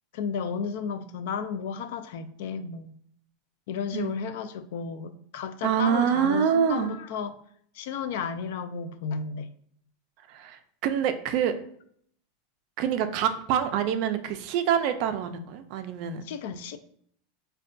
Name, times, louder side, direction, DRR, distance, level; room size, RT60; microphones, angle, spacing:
voice 1, 0.1-2.9 3.7-7.3 7.7-9.5 16.2-16.8, left 6 dB, 65° left, 11 dB, 0.3 m, -33 dB
voice 2, 5.6-6.9 10.3-11.5 12.8-16.2, right 8 dB, 45° right, 8 dB, 0.4 m, -26 dB
5.2 x 2.2 x 2.5 m, 0.64 s
supercardioid pair, 165°, 0 cm